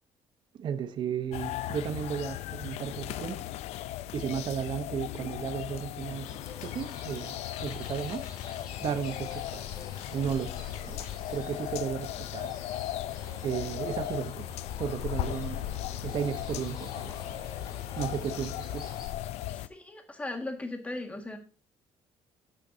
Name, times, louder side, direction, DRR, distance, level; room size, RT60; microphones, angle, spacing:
voice 1, 0.6-3.4 4.1-6.3 6.6-7.3 7.6-8.3 8.8-9.7 10.1-10.6 10.8-11.0 11.3-12.5 13.4-14.5 14.8-17.2 18.0-18.9, right 8 dB, 45° right, 0.9 m, -34 dB
sound 1, 1.3-19.7, left 13 dB, 85° left, 0.5 m, -37 dB
sound 2, 6.2-19.1, left 2 dB, 40° left, 4.9 m, -48 dB
voice 2, 19.5-21.4, left 2 dB, 10° left, 1.8 m, -38 dB
12.0 x 9.1 x 2.7 m
cardioid pair, 170°, 11 cm